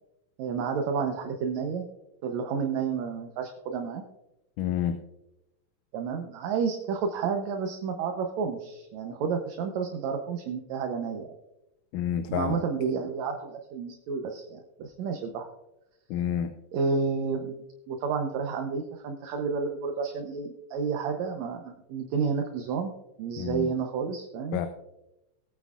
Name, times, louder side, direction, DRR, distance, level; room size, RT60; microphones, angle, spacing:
voice 1, 0.4-1.9 2.2-4.0 5.9-11.4 12.3-15.5 16.7-22.9 23.2-24.6, right 5 dB, 70° right, 4 dB, 2.0 m, -30 dB
voice 2, 4.6-5.0 11.9-12.6 16.1-16.5 23.4-23.7 24.5-24.7, left 9 dB, 85° left, 8 dB, 2.2 m, -28 dB
19.0 x 9.1 x 2.4 m, 0.89 s
omnidirectional pair, 3.6 m